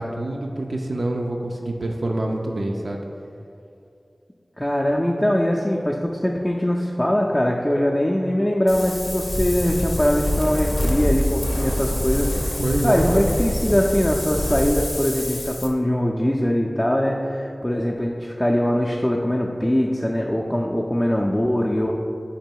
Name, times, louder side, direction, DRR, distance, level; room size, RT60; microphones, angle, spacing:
voice 1, 0.0-3.0 12.6-13.3, right 1 dB, 80° right, 0 dB, 0.3 m, -26 dB
voice 2, 4.6-12.6 12.8-21.9, equal, 15° left, -2 dB, 0.3 m, -22 dB
Wind, 8.7-15.7, left 1 dB, 65° left, 0.5 m, -25 dB
4.0 x 3.0 x 4.5 m, 2.5 s
wide cardioid pair, 55°, 0 cm